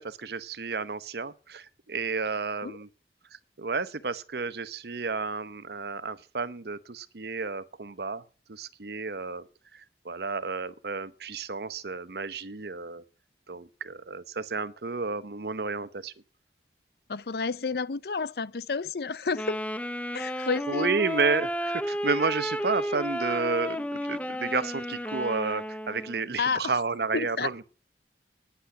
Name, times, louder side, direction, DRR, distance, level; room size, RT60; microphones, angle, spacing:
voice 1, 0.0-2.9 3.6-8.2 8.5-9.4 9.7-13.0 13.5-16.1 20.7-27.6, right 4 dB, 70° right, 0.8 m, -31 dB
voice 2, 17.1-19.6 20.1-20.9 26.4-26.7 27.1-27.5, left 5 dB, 65° left, 0.5 m, -30 dB
Wind instrument woodwind instrument, 19.3-26.3, equal, 10° left, 0.6 m, -32 dB
10.0 x 8.1 x 8.8 m
head